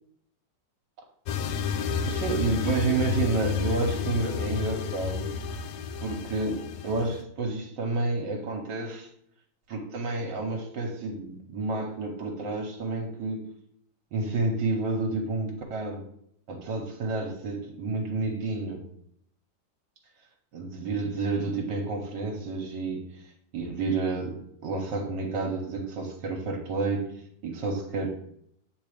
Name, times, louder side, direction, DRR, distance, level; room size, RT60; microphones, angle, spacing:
sound 1, 1.3-7.2, left 6 dB, 75° left, 1.2 m, -31 dB
voice 1, 2.1-5.4 6.0-9.1 9.7-13.4 14.1-16.1 16.5-18.8 20.5-23.2 23.5-27.1 27.4-28.1, right 3 dB, 75° right, 1 dB, 1.6 m, -30 dB
8.1 x 3.2 x 4.9 m, 0.70 s
omnidirectional pair, 2.0 m